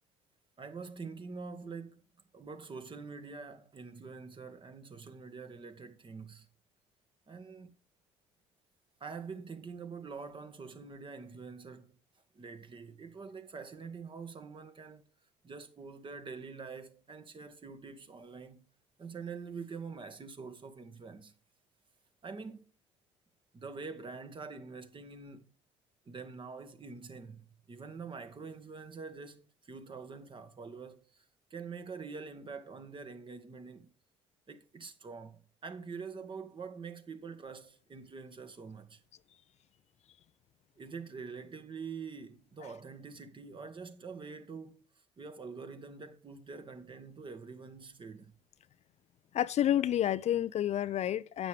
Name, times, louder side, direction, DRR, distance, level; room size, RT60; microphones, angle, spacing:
voice 1, 0.6-2.0 2.3-6.5 7.3-7.7 9.0-12.0 12.3-15.0 15.4-18.6 19.0-21.3 22.2-22.6 23.5-25.5 26.1-31.2 31.5-33.9 34.5-39.0 40.8-44.9 45.2-48.3, right 5 dB, 35° right, 1.8 m, -45 dB
voice 2, 49.3-51.5, left 11 dB, 45° left, 0.6 m, -29 dB
12.0 x 8.6 x 3.4 m
hypercardioid pair, 55°, 15 cm